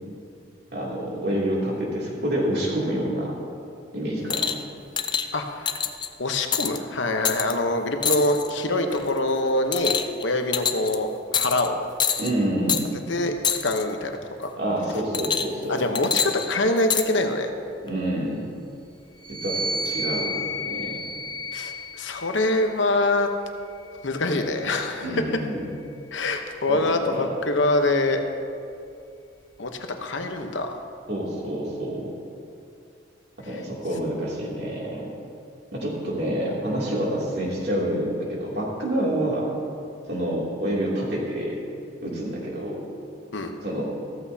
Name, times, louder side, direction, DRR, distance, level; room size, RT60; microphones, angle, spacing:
voice 1, 0.7-3.3 3.9-4.5 12.2-12.9 14.6-15.8 17.8-18.4 19.3-20.3 20.6-21.0 25.0-25.6 26.7-27.3 31.1-32.1 33.4-35.1 35.7-39.4 40.1-41.6 42.0-42.8 43.6-43.8, right 1 dB, 55° right, -5 dB, 2.8 m, -27 dB
sound 1, 4.3-4.6 5.0-5.3 5.7-6.1 6.5-6.8 7.3-7.5 8.0-8.5 8.9-9.2 9.7-10.2 10.5-11.0 11.3-11.7 12.0-12.3 12.7-12.8 13.4-13.8 15.1-15.6 16.0-17.1 17.9-18.0, left 7 dB, 25° left, 0.4 m, -25 dB
voice 2, 5.3-5.7 6.2-11.8 13.1-13.3 13.6-14.5 15.7-17.5 21.5-23.3 24.0-25.2 26.1-28.2 29.6-29.7 30.0-30.7 33.5-33.6 43.3-43.5, left 2 dB, 75° left, 5 dB, 1.0 m, -24 dB
sound 2, 19.2-22.8 23.6-25.2, left 1 dB, 25° right, 2.1 m, -33 dB
15.0 x 14.0 x 2.8 m, 2.5 s
head